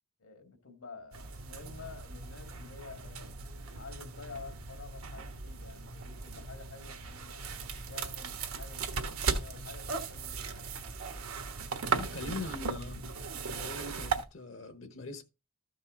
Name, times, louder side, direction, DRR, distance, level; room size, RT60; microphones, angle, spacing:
voice 1, 0.2-3.4 3.7-7.4 7.9-10.7, left 4 dB, 80° left, 2.1 m, -50 dB
sound 1, 1.1-14.2, right 4 dB, 80° right, 1.3 m, -37 dB
voice 2, 12.0-13.1 13.5-15.2, left 2 dB, 65° left, 1.1 m, -41 dB
13.5 x 5.5 x 3.7 m
head